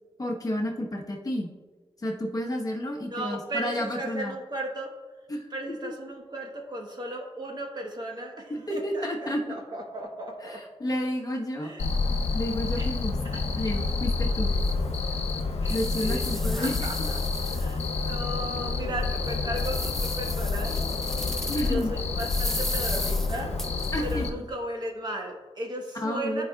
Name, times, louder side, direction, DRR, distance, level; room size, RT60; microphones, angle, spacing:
voice 1, 0.2-1.5 2.0-4.3 5.3-5.5 5.8-5.9 8.5-9.6 10.4-11.7 12.3-13.2 13.6-14.5 15.7-16.9 21.5-21.9 23.9-24.4 26.0-26.4, left 1 dB, 35° left, -1 dB, 1.1 m, -31 dB
voice 2, 3.1-4.9 5.5-10.6 11.6-11.9 12.8-12.9 13.2-13.4 15.1-15.2 15.6-21.1 21.6-23.7 24.0-26.4, right 1 dB, 40° right, 1 dB, 1.2 m, -36 dB
Cricket, 11.8-24.3, left 3 dB, 75° left, 0.6 m, -28 dB
sound 1, 14.0-14.1 14.7-14.8 15.3-18.1 18.6-18.7 19.2-21.9 22.2-24.1, left 1 dB, 5° left, 0.6 m, -37 dB
14.0 x 4.8 x 2.3 m, 1.3 s
wide cardioid pair, 135°, 11 cm